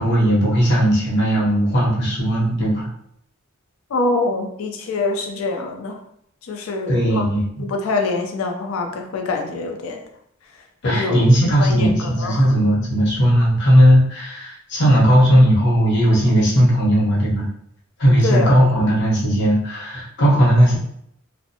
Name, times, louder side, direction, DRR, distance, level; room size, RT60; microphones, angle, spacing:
voice 1, 0.0-2.9 6.9-7.4 10.8-17.5 18.0-20.8, equal, 55° left, -5 dB, 0.8 m, -16 dB
voice 2, 3.9-6.0 6.4-7.3 7.6-10.0 10.8-11.2 11.6-12.5 18.2-18.7, left 3 dB, 70° left, 3 dB, 0.4 m, -25 dB
2.5 x 2.0 x 2.7 m, 0.70 s
head